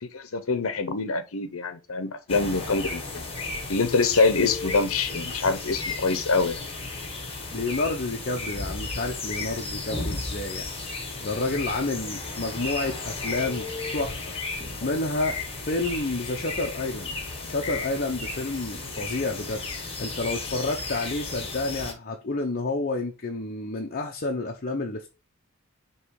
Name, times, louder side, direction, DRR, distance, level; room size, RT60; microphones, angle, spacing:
voice 1, 0.0-3.2 3.7-6.6, left 4 dB, 75° left, 0.9 m, -25 dB
sound 1, 2.3-21.9, left 3 dB, 30° left, 1.5 m, -34 dB
voice 2, 7.5-13.7 13.9-14.3 14.8-17.1 17.4-25.2, left 2 dB, 45° left, 0.8 m, -30 dB
6.7 x 3.1 x 4.7 m
head